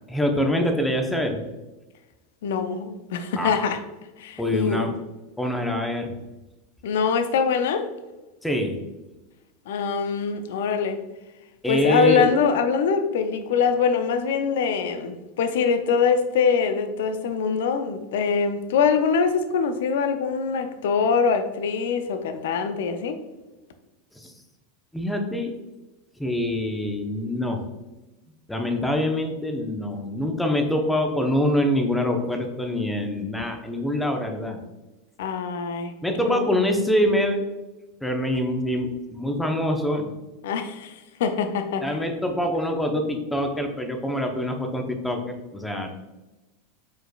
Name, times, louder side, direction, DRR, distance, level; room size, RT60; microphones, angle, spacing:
voice 1, 0.1-1.5 3.4-3.6 4.4-5.0 5.4-6.2 8.4-8.8 11.6-12.3 24.2-24.3 24.9-25.5 26.2-27.6 28.5-34.6 36.0-37.5 38.0-40.1 41.8-45.9, equal, 5° left, 4 dB, 0.8 m, -25 dB
voice 2, 2.4-3.8 4.2-4.9 6.8-7.9 9.7-11.0 11.7-23.2 35.2-35.9 36.2-36.5 40.4-42.0, left 6 dB, 70° left, 8 dB, 0.4 m, -24 dB
4.6 x 4.6 x 2.3 m, 1.1 s
hypercardioid pair, 90°, 0 cm